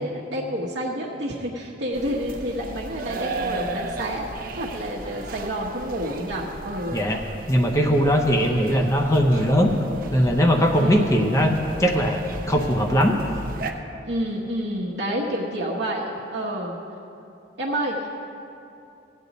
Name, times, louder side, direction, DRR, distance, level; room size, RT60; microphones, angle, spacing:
voice 1, 0.0-4.3 4.5-7.1 10.8-11.2 14.0-16.7 17.6-18.2, equal, 70° right, -3 dB, 1.0 m, -29 dB
sound 1, 1.9-13.7, right 2 dB, 50° right, 0.7 m, -35 dB
voice 2, 6.9-7.2 7.5-9.7 10.1-13.2, equal, 15° left, 2 dB, 0.6 m, -20 dB
16.0 x 8.3 x 4.1 m, 2.7 s
head